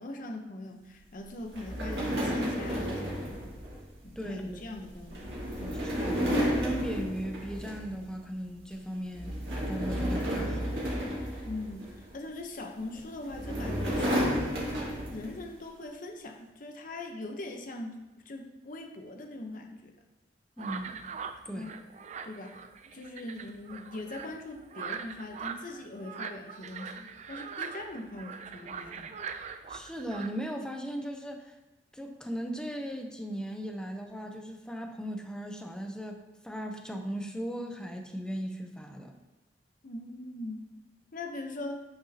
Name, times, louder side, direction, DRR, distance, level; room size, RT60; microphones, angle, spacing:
voice 1, 0.0-3.6 4.0-5.8 11.4-14.4 15.1-19.9 21.5-21.8 22.2-29.2 39.8-40.7 41.1-41.8, left 2 dB, 50° left, 4 dB, 0.8 m, -41 dB
sound 1, 1.5-8.1 8.4-8.7 9.1-12.1 12.9-15.4, equal, 70° right, 2.0 m, -32 dB
voice 2, 4.2-4.6 5.8-9.3 9.7-10.7 20.6-21.0 21.5-21.7 29.7-31.5 31.9-36.2 36.4-39.1, equal, 5° left, 3 dB, 0.7 m, -37 dB
sound 2, 20.6-30.3, right 6 dB, 40° right, 0.4 m, -41 dB
8.7 x 6.0 x 2.8 m, 1.0 s
head